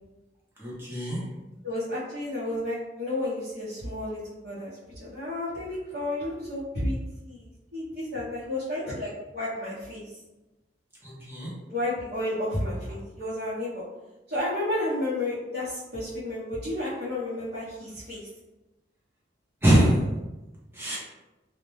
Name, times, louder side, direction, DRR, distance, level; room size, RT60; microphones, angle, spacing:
voice 1, 0.6-1.2 11.0-11.5 19.6-20.1 20.7-21.0, right 1 dB, 15° right, -6 dB, 0.7 m, -23 dB
voice 2, 1.6-7.0 7.2-10.2 11.7-13.8 14.3-18.3, left 1 dB, 60° right, -11 dB, 0.8 m, -32 dB
2.1 x 2.1 x 3.0 m, 1.1 s
head